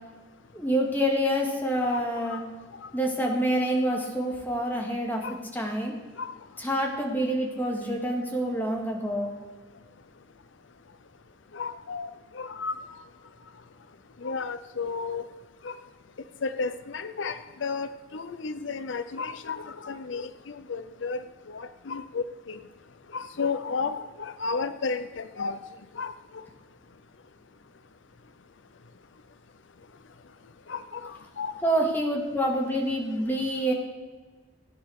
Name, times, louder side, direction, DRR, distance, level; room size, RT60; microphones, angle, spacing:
voice 1, 0.5-2.4 2.9-5.2 5.5-5.9 6.6-9.3 31.6-33.7, equal, 10° left, 0 dB, 2.3 m, -27 dB
voice 2, 1.9-2.4 2.8-2.9 5.2-5.4 6.2-6.3 11.5-12.8 14.2-15.3 15.6-15.8 16.4-22.6 23.1-25.6 25.9-26.4 30.7-31.5, left 4 dB, 75° left, 12 dB, 0.6 m, -33 dB
16.5 x 9.5 x 6.5 m, 1.3 s
head